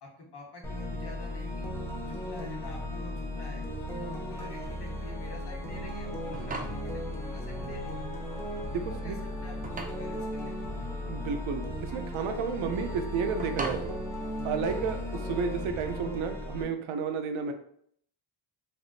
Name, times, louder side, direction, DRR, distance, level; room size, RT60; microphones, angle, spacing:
voice 1, 0.0-3.7 3.9-8.1 8.8-10.9 14.6-14.8, left 2 dB, 55° left, 0 dB, 1.0 m, -47 dB
sound 1, 0.6-16.6, left 1 dB, 5° left, 0.7 m, -36 dB
sound 2, 6.3-15.1, right 2 dB, 20° right, 0.3 m, -43 dB
voice 2, 8.7-9.2 11.1-14.0 14.4-17.5, right 5 dB, 80° right, 7 dB, 0.6 m, -32 dB
3.4 x 2.5 x 2.4 m, 0.65 s
cardioid pair, 95°, 47 cm